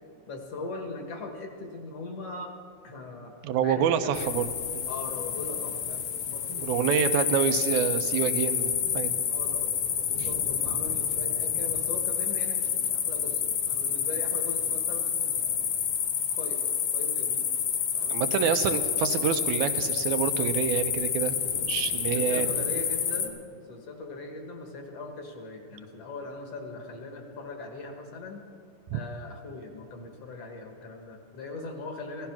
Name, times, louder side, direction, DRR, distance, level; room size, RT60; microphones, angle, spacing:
voice 1, 0.3-2.5 2.8-3.4 3.6-4.4 4.9-7.4 9.3-15.7 16.4-17.5 17.9-18.8 22.1-28.5 28.9-32.3, left 3 dB, 60° left, 3 dB, 2.4 m, -40 dB
voice 2, 3.4-4.5 4.7-4.9 6.5-9.3 18.1-22.6 28.9-29.0, right 9 dB, 85° right, 9 dB, 2.1 m, -27 dB
sound 1, 4.1-23.3, left 8 dB, 90° left, 2.6 m, -29 dB
16.0 x 13.0 x 5.9 m, 2.2 s
omnidirectional pair, 3.4 m